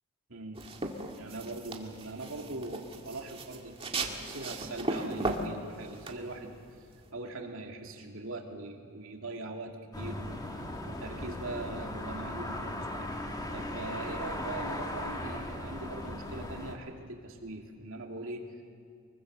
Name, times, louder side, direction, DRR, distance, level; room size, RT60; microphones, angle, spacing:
voice 1, 0.3-0.6 1.2-6.5 7.1-13.1 13.5-18.7, right 2 dB, 65° right, 2 dB, 2.7 m, -41 dB
sound 1, 0.5-7.1, right 2 dB, 25° right, 2.0 m, -37 dB
sound 2, 9.9-16.7, left 1 dB, 15° left, 2.0 m, -38 dB
25.0 x 23.0 x 6.8 m, 2.4 s
head